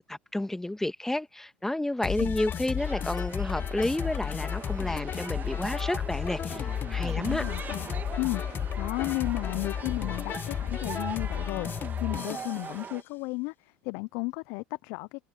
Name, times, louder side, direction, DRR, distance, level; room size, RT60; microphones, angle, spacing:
voice 1, 0.0-7.4, left 1 dB, 5° left, 1.7 m, -31 dB
sound 1, 2.0-12.6, left 9 dB, 40° left, 1.1 m, -33 dB
sound 2, 2.8-13.0, right 6 dB, 30° right, 1.7 m, -42 dB
voice 2, 7.1-7.9 8.2-15.2, left 28 dB, 65° left, 0.6 m, -34 dB
open air
hypercardioid pair, 80°, 6 cm